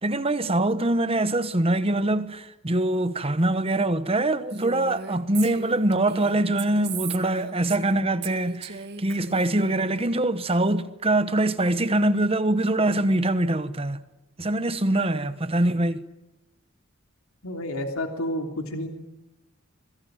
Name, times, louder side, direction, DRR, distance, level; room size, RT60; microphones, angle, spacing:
voice 1, 0.0-14.0 14.4-16.0, right 1 dB, 25° right, 1.1 m, -24 dB
Female speech woman speaking, 4.5-7.9 8.2-10.0, right 6 dB, 50° right, 2.2 m, -38 dB
voice 2, 17.4-18.9, left 1 dB, 80° left, 3.2 m, -30 dB
27.5 x 21.5 x 9.3 m
head